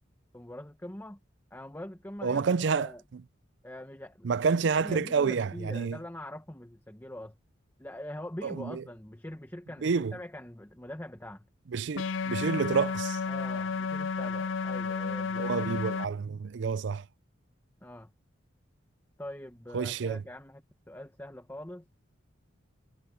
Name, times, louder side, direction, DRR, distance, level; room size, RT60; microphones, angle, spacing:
voice 1, 0.3-1.2 1.5-3.0 3.6-4.3 4.5-7.4 7.8-11.4 13.3-15.7 17.8-18.1 19.2-20.6 20.9-21.8, left 1 dB, 10° left, 1.2 m, -43 dB
voice 2, 2.2-3.2 4.2-6.0 8.4-8.8 9.8-10.2 11.7-13.2 15.4-17.0 19.7-20.2, right 5 dB, 65° right, 0.4 m, -29 dB
sound 1, 12.0-16.1, left 5 dB, 75° left, 0.5 m, -32 dB
head